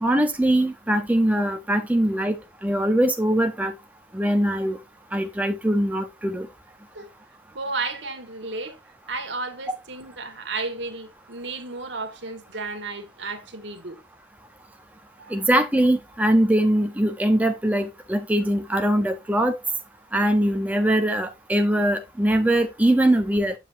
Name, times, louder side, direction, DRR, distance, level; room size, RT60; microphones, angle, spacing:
voice 1, 0.0-3.7 4.1-4.8 5.1-6.5 15.3-19.5 20.1-23.5, right 1 dB, 10° right, 0.6 m, -22 dB
voice 2, 7.6-8.8 9.1-14.0 15.2-15.4, right 3 dB, 80° right, 1.7 m, -33 dB
7.3 x 7.2 x 2.6 m
head